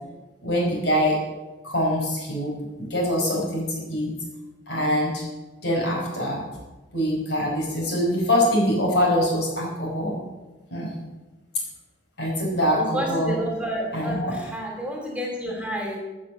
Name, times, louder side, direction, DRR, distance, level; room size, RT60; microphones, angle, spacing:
voice 1, 0.4-1.2 1.6-4.1 4.7-5.2 5.6-6.4 6.9-10.1 10.7-10.9 12.2-13.4 13.9-14.3, equal, 65° left, -2 dB, 5.1 m, -24 dB
voice 2, 12.7-16.0, equal, 5° right, 0 dB, 2.6 m, -30 dB
15.0 x 6.5 x 7.1 m, 1.2 s
head